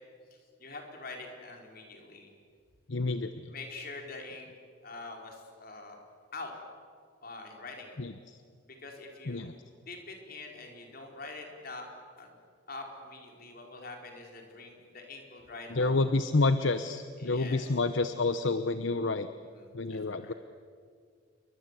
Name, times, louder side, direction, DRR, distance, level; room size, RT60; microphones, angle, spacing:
voice 1, 0.6-2.3 3.5-4.5 4.8-6.0 6.3-6.5 7.2-8.0 8.7-9.6 9.9-11.9 12.2-12.4 12.7-15.9 17.2-17.7 19.5-20.3, left 3 dB, 45° left, 2 dB, 4.4 m, -45 dB
voice 2, 2.9-3.3 8.0-8.4 9.3-9.5 15.7-19.3 19.7-20.3, left 3 dB, 65° left, 10 dB, 0.9 m, -29 dB
28.5 x 23.5 x 8.2 m, 2.1 s
head